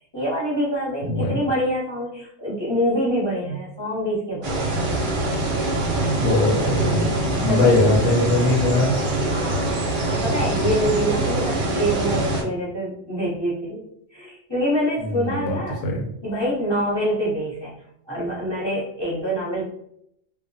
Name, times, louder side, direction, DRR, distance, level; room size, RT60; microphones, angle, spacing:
voice 1, 0.1-4.9 7.5-7.8 9.3-13.8 14.1-15.8 16.2-17.7 18.1-19.7, equal, 25° left, -7 dB, 0.7 m, -25 dB
voice 2, 1.0-1.4 3.5-3.6 6.1-9.0 15.0-16.0, left 2 dB, 75° left, 0 dB, 0.9 m, -21 dB
sound 1, 4.4-12.4, right 2 dB, 55° right, 0.6 m, -24 dB
2.2 x 2.2 x 2.5 m, 0.73 s
omnidirectional pair, 1.3 m